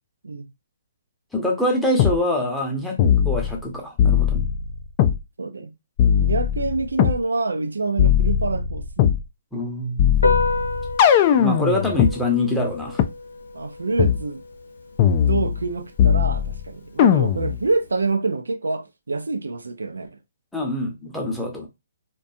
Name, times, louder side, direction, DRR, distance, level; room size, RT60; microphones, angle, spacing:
voice 1, 1.3-3.0 3.2-4.5 9.5-10.1 11.3-13.0 20.5-21.7, left 1 dB, 5° left, 0.7 m, -24 dB
sound 1, 2.0-2.2 3.0-3.7 4.0-5.2 6.0-7.2 8.0-9.2 10.0-12.1 13.0-13.1 14.0-14.2 15.0-15.7 16.0-16.6 17.0-17.6, left 9 dB, 35° left, 0.3 m, -19 dB
voice 2, 5.4-5.7 6.2-9.1 13.5-14.4 15.3-20.2, right 3 dB, 85° right, 0.4 m, -26 dB
Piano, 10.1-18.1, left 3 dB, 90° left, 0.7 m, -31 dB
2.5 x 2.2 x 2.6 m
hypercardioid pair, 140°, 0 cm